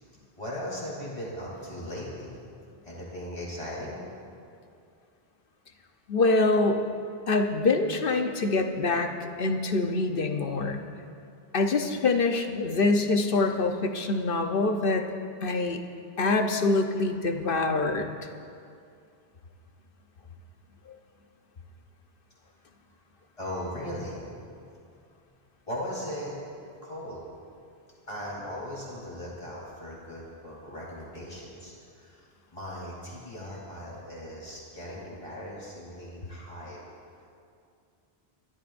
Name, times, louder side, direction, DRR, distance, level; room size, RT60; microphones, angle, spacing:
voice 1, 0.4-2.4 2.8-4.0 23.4-24.2 25.7-26.4 26.8-27.2 28.1-32.2 32.5-36.8, equal, 30° left, -6 dB, 4.2 m, -38 dB
voice 2, 6.1-6.8 7.3-9.1 9.4-10.8 11.5-15.0 15.4-15.8 16.2-18.2, left 3 dB, 60° left, 5 dB, 1.1 m, -25 dB
28.0 x 13.0 x 2.6 m, 2.4 s
omnidirectional pair, 1.1 m